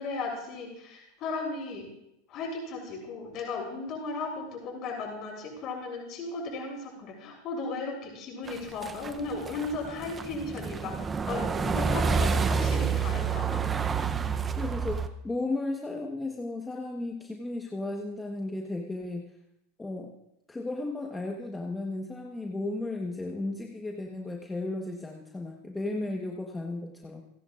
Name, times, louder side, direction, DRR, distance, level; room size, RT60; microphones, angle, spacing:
voice 1, 0.0-1.8 2.3-13.6, left 3 dB, 45° left, -1 dB, 7.0 m, -36 dB
sound 1, 8.5-15.1, right 5 dB, 20° right, 0.7 m, -29 dB
voice 2, 14.6-19.3 19.8-20.1 20.5-27.2, left 2 dB, 10° left, 0 dB, 1.3 m, -34 dB
29.5 x 10.5 x 2.5 m, 0.82 s
supercardioid pair, 135°, 0 cm